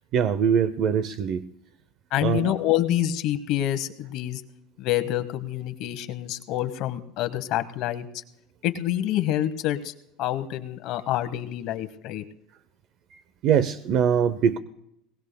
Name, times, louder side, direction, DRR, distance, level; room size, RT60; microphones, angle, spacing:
voice 1, 0.1-1.4 2.2-2.5 13.4-14.6, right 8 dB, 45° right, 15 dB, 0.6 m, -22 dB
voice 2, 2.1-4.4 4.8-8.1 8.6-9.9 10.2-12.2, left 13 dB, 50° left, 11 dB, 1.0 m, -27 dB
22.0 x 19.0 x 2.2 m, 0.79 s
cardioid pair, 155°, 0 cm